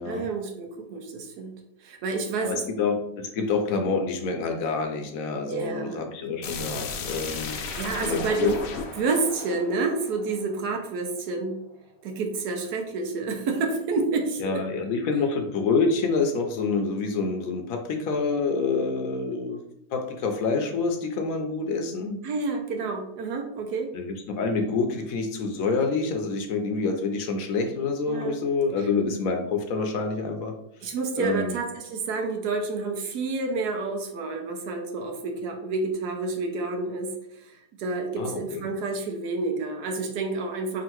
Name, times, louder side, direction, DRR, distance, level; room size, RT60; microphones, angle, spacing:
voice 1, 0.0-2.7 5.5-6.1 7.7-8.6 9.0-11.6 12.0-14.6 22.2-23.9 28.1-28.4 30.8-40.8, right 3 dB, 75° right, 3 dB, 1.3 m, -29 dB
voice 2, 2.4-7.7 8.0-8.5 14.4-19.6 19.9-22.2 23.9-30.5 31.2-31.6 38.2-38.6, left 4 dB, 65° left, 4 dB, 1.0 m, -27 dB
sound 1, 6.4-11.1, left 4 dB, 90° left, 0.5 m, -35 dB
3.7 x 2.5 x 4.4 m, 0.80 s
omnidirectional pair, 1.7 m